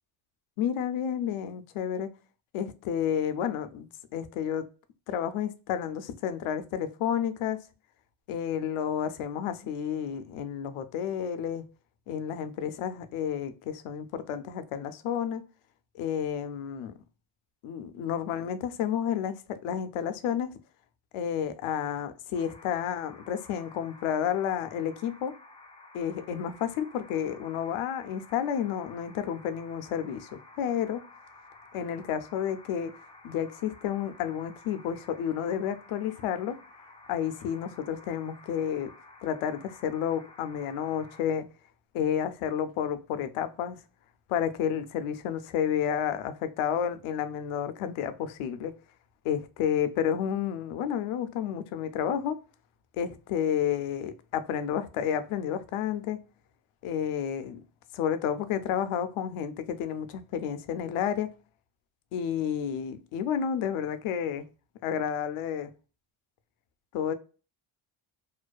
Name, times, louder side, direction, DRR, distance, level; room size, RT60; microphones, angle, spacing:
voice 1, 0.6-2.1 2.5-4.7 5.1-7.6 8.3-11.7 12.1-15.4 15.9-16.9 17.6-20.5 21.1-25.3 25.9-31.0 31.7-32.9 33.2-36.6 37.1-38.9 39.2-41.5 41.9-43.8 44.3-48.7 49.2-52.4 53.0-56.2 56.8-57.6 57.9-61.3 62.1-64.4 64.8-65.7 66.9-67.1, left 9 dB, 80° left, 0.6 m, -31 dB
sound 1, 22.3-41.2, left 3 dB, 15° left, 0.3 m, -53 dB
2.5 x 2.2 x 2.2 m
cardioid pair, 110°, 49 cm